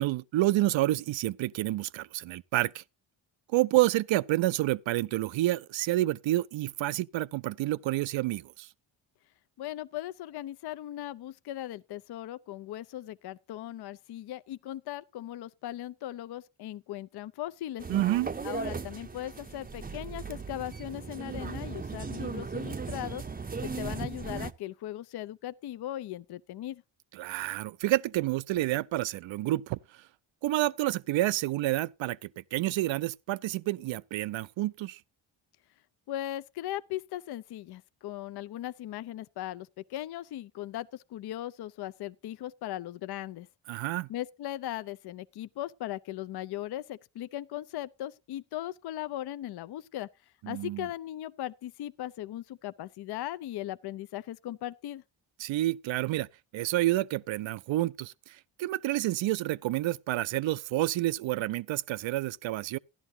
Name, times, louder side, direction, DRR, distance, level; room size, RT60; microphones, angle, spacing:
voice 1, 0.0-2.8 3.5-8.7 17.9-18.3 27.1-29.8 30.4-35.0 43.7-44.1 50.4-50.9 55.4-56.3 56.5-62.8, right 16 dB, 70° right, 0.5 m, -29 dB
voice 2, 9.6-17.9 18.4-23.2 23.6-26.8 36.1-43.5 44.1-50.1 50.5-55.0, left 13 dB, 55° left, 0.5 m, -38 dB
sound 1, 17.8-24.5, right 4 dB, 20° right, 0.6 m, -37 dB
13.5 x 11.0 x 2.7 m
cardioid pair, 65°, 48 cm